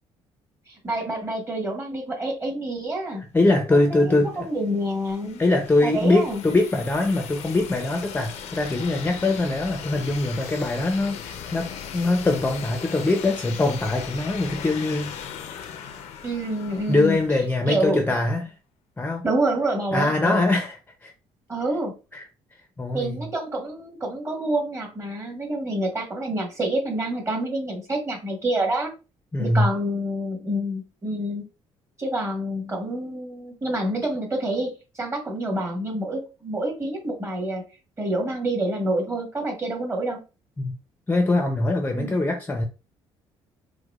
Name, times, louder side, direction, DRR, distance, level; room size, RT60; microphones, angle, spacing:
voice 1, 0.7-3.2 3.7-5.4 5.8-6.4 16.2-17.2 17.7-18.0 19.2-20.5 21.5-22.0 22.9-28.9 29.4-31.4 32.0-37.6 38.0-40.2 41.9-42.1, right 1 dB, 25° right, 1.4 m, -27 dB
voice 2, 3.3-4.5 5.4-15.1 16.9-18.5 19.0-19.3 19.9-21.1 22.1-22.2 22.8-23.3 29.3-29.7 40.6-40.7 41.1-42.6, left 2 dB, 15° left, 0.6 m, -22 dB
sound 1, 4.1-17.9, left 8 dB, 75° left, 0.5 m, -38 dB
4.7 x 2.1 x 2.4 m
cardioid pair, 105°, 12 cm